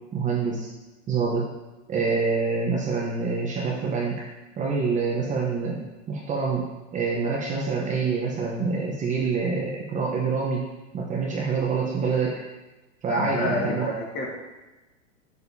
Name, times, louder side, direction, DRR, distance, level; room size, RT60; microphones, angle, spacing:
voice 1, 0.1-0.7 1.1-1.4 1.9-4.2 4.6-5.8 6.1-6.7 6.9-10.7 10.9-12.4 13.0-13.9, right 4 dB, 20° right, -3 dB, 0.9 m, -26 dB
voice 2, 13.1-14.3, left 2 dB, 25° left, -2 dB, 1.7 m, -28 dB
7.7 x 7.2 x 2.7 m, 1.1 s
hypercardioid pair, 135°, 39 cm